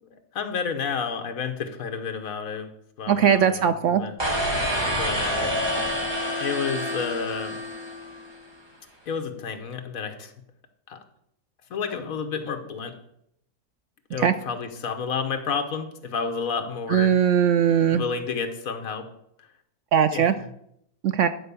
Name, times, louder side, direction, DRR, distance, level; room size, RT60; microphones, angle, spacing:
voice 1, 0.0-3.7 4.0-4.1 5.0-5.6 6.4-7.6 9.1-10.3 10.9-11.0 11.7-13.0 14.1-17.2 17.9-19.1 20.1-20.5, left 5 dB, 65° left, 7 dB, 1.4 m, -31 dB
voice 2, 3.1-4.0 14.2-14.3 16.9-18.0 19.9-20.3 21.0-21.3, right 8 dB, 70° right, 11 dB, 0.7 m, -20 dB
sound 1, 4.2-8.4, equal, 15° right, 1.5 m, -27 dB
11.0 x 4.5 x 6.9 m, 0.75 s
omnidirectional pair, 1.6 m